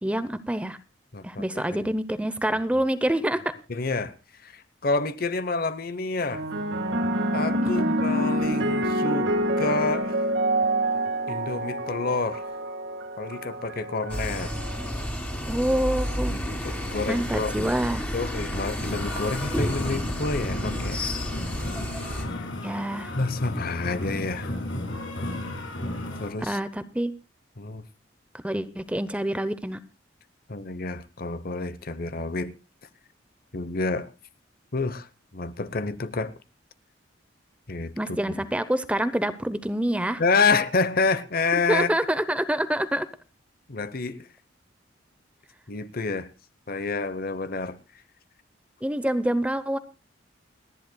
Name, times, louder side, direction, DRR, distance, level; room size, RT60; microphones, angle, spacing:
voice 1, 0.0-0.8 1.2-3.5 7.6-8.0 15.5-16.4 17.1-18.1 22.6-23.1 26.4-27.1 28.3-29.8 38.0-40.2 41.7-43.1 48.8-49.8, right 1 dB, 5° right, 0.7 m, -26 dB
voice 2, 1.1-1.9 3.7-4.1 4.4-6.4 7.3-10.2 11.3-12.5 13.2-14.5 16.2-17.7 18.1-21.1 22.4-22.5 23.2-24.5 26.2-26.6 27.6-27.8 30.5-32.5 33.5-34.1 34.7-36.3 37.7-38.3 40.2-41.9 43.7-44.3 45.7-46.3 46.7-47.8, left 3 dB, 50° left, 0.9 m, -28 dB
sound 1, 6.3-14.9 15.8-16.2, right 1 dB, 70° right, 1.8 m, -27 dB
sound 2, 14.1-22.3, equal, 10° left, 2.8 m, -31 dB
sound 3, 18.8-26.3, left 1 dB, 80° left, 6.9 m, -34 dB
29.5 x 10.5 x 2.3 m
head